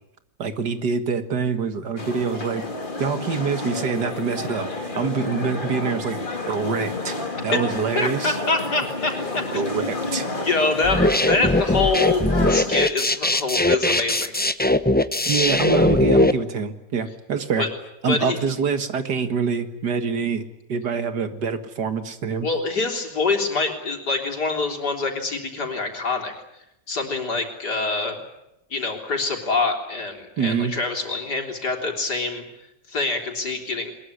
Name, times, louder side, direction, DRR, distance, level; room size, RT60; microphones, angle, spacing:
voice 1, 0.4-2.6 3.0-6.2 6.5-7.2 7.4-8.4 9.5-10.3 15.3-17.7 18.0-20.4 20.7-22.5 30.4-30.7, right 5 dB, 80° right, 9 dB, 2.3 m, -25 dB
sound 1, 2.0-12.7, left 2 dB, 30° left, 2.6 m, -30 dB
voice 2, 8.0-14.3 17.6-17.7 18.1-18.4 22.4-26.3 26.9-28.2 28.7-32.5 32.9-33.9, left 3 dB, 75° left, 3 dB, 4.3 m, -25 dB
sound 2, 10.8-16.3, left 1 dB, 15° left, 0.3 m, -20 dB
22.0 x 21.5 x 9.9 m, 0.86 s
omnidirectional pair, 1.8 m